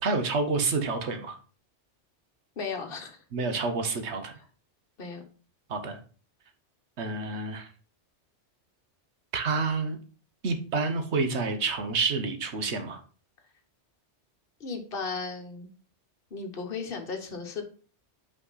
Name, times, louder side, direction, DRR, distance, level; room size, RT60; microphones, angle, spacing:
voice 1, 0.0-1.3 3.3-4.3 5.7-6.0 7.0-7.7 9.3-10.0 10.4-13.0, right 4 dB, 70° right, 7 dB, 1.3 m, -28 dB
voice 2, 2.6-3.2 5.0-5.2 14.6-15.7 16.3-17.6, left 4 dB, 55° left, 4 dB, 1.3 m, -35 dB
5.7 x 5.0 x 4.0 m, 0.39 s
omnidirectional pair, 1.2 m